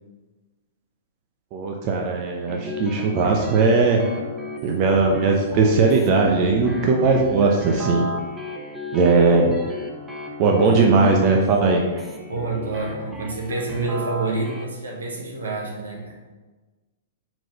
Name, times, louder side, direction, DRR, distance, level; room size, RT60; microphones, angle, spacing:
voice 1, 1.5-4.0 4.6-8.0 8.9-9.5 10.4-11.8, right 4 dB, 40° right, 1 dB, 0.8 m, -18 dB
sound 1, 2.5-14.6, left 1 dB, 10° right, 0.8 m, -34 dB
voice 2, 12.3-16.3, right 3 dB, 75° right, 0 dB, 1.4 m, -28 dB
4.9 x 3.9 x 5.3 m, 1.3 s
hypercardioid pair, 115°, 0 cm